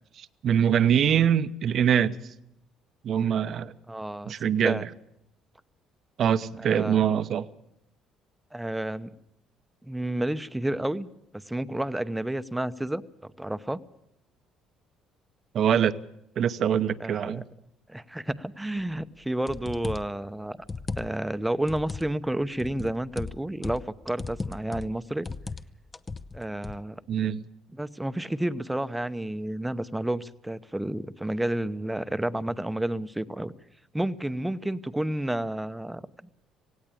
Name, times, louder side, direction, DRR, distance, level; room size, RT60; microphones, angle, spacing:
voice 1, 0.2-2.1 3.0-3.7 4.2-4.8 6.2-7.5 15.5-15.9 16.4-17.4 27.1-27.4, right 9 dB, 60° right, 0.9 m, -23 dB
voice 2, 3.9-4.9 6.6-7.0 8.5-9.1 9.8-11.1 11.3-13.8 17.0-17.4 17.9-20.6 21.0-25.3 26.3-27.0 27.7-33.5 33.9-36.1, right 1 dB, 5° right, 0.9 m, -30 dB
sound 1, 19.5-20.2 20.6-21.3 21.7-22.1 22.6-23.9 24.2-25.0 25.3-25.7 25.9-26.8, left 4 dB, 25° left, 0.7 m, -36 dB
18.0 x 17.0 x 8.6 m
supercardioid pair, 80°, 0 cm